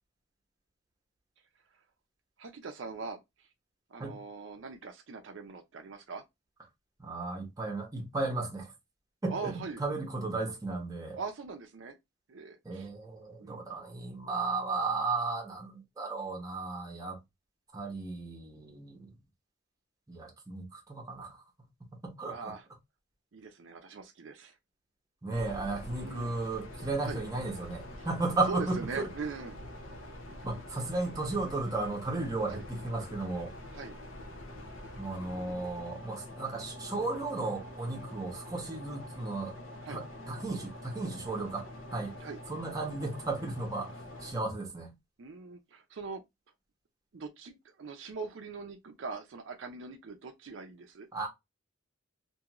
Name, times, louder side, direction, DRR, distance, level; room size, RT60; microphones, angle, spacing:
voice 1, 2.4-3.5 3.9-6.2 9.3-9.8 11.1-12.0 12.3-12.9 13.4-13.6 22.3-22.7 23.3-24.6 25.9-26.3 27.0-27.2 28.0-28.1 28.5-29.6 32.5-32.6 33.7-34.0 35.2-35.6 39.8-40.0 42.2-42.4 45.2-46.2 47.1-51.1, right 4 dB, 65° right, 0.5 m, -42 dB
voice 2, 7.0-8.7 9.2-11.2 12.6-17.2 17.7-19.1 20.1-21.4 21.9-22.5 25.2-29.1 30.4-33.5 35.0-39.5 39.9-42.1 42.5-44.0 44.2-44.9 51.1-51.3, right 3 dB, 15° right, 0.7 m, -35 dB
sound 1, 25.3-44.3, left 1 dB, 75° left, 0.6 m, -46 dB
2.6 x 2.4 x 2.9 m
head